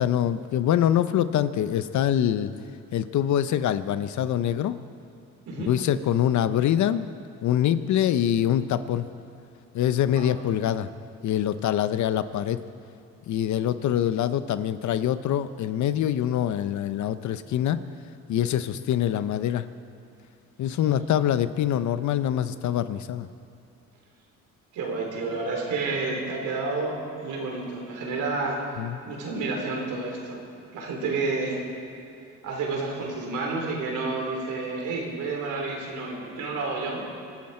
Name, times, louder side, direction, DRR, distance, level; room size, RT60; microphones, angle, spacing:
voice 1, 0.0-2.5 2.9-4.8 5.6-7.1 7.4-9.1 9.7-10.9 11.2-12.6 13.3-17.8 18.3-19.7 20.6-23.3 28.8-29.0, left 10 dB, 70° left, 13 dB, 0.8 m, -24 dB
voice 2, 24.7-28.6 29.0-30.4 30.7-31.6 32.4-37.1, right 3 dB, 80° right, -1 dB, 4.1 m, -30 dB
24.5 x 13.0 x 4.4 m, 2.4 s
cardioid pair, 90°, 30 cm